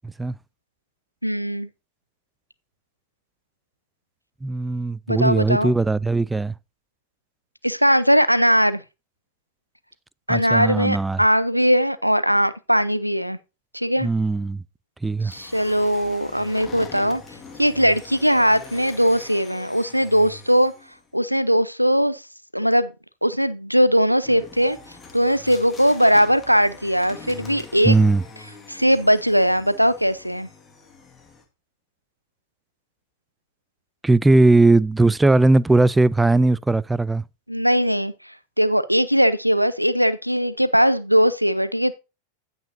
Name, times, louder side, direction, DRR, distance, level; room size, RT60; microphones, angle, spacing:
voice 1, 0.0-0.3 4.4-6.5 10.3-11.2 14.0-14.6 15.0-15.3 27.8-28.2 34.0-37.2, right 2 dB, 10° right, 0.3 m, -18 dB
voice 2, 1.2-1.7 5.1-5.7 7.6-8.8 10.3-13.4 13.7-14.1 15.2-17.2 17.6-20.7 21.1-22.2 22.5-22.9 23.2-24.8 25.1-28.2 28.7-30.5 37.5-38.1 38.6-41.9, equal, 90° right, 0.6 m, -19 dB
sound 1, 15.3-21.1 24.2-31.4, left 4 dB, 15° left, 1.7 m, -42 dB
16.0 x 5.6 x 2.6 m
figure-of-eight pair, 90°, 0 cm